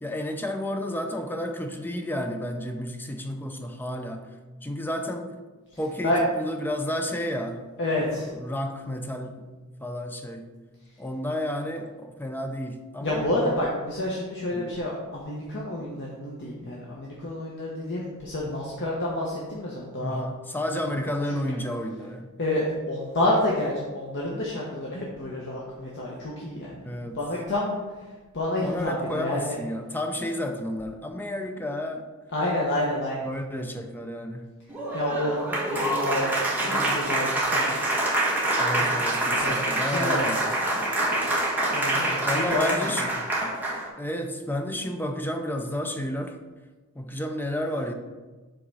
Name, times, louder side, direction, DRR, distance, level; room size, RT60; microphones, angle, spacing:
voice 1, 0.0-4.3 4.6-5.3 5.8-7.7 8.2-9.5 9.8-10.5 11.0-13.2 14.5-14.7 20.0-22.3 26.8-27.2 28.6-32.1 33.2-34.5 38.6-40.5 42.2-43.1 44.0-46.4 46.9-47.9, left 1 dB, 10° left, 5 dB, 0.5 m, -31 dB
voice 2, 7.8-8.3 13.0-20.2 21.0-21.6 22.4-27.8 28.3-29.6 32.3-33.3 34.9-35.4 35.7-36.3 36.6-37.8 38.8-38.9 39.2-40.3 41.7-43.0, left 1 dB, 55° left, -4 dB, 1.1 m, -29 dB
Applause, 34.7-43.9, right 1 dB, 10° right, 1.3 m, -26 dB
8.0 x 3.8 x 5.5 m, 1.3 s
head